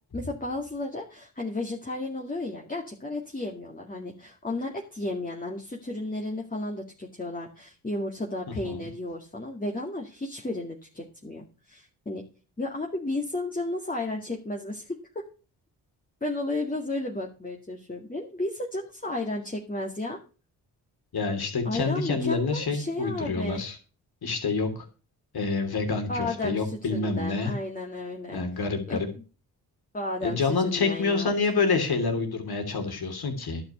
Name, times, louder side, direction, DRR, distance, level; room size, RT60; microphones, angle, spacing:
voice 1, 0.1-12.2 12.6-15.2 16.2-20.2 21.6-23.6 26.1-28.4 28.9-29.0 29.9-31.3, left 2 dB, 20° left, -1 dB, 2.2 m, -33 dB
voice 2, 21.1-23.8 24.2-24.8 25.3-27.5 28.3-29.1 30.2-33.6, left 4 dB, 60° left, 4 dB, 3.3 m, -27 dB
11.0 x 6.1 x 6.9 m, 0.36 s
supercardioid pair, 50°, 42 cm